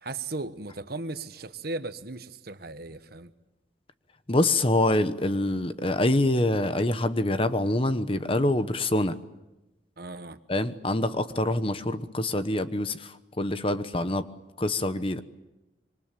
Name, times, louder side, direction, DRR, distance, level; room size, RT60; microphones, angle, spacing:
voice 1, 0.0-3.3 10.0-10.4, right 3 dB, 55° right, 1.2 m, -36 dB
voice 2, 4.3-9.2 10.5-14.3 14.6-15.2, left 1 dB, 30° left, 1.0 m, -25 dB
26.5 x 24.5 x 9.1 m
head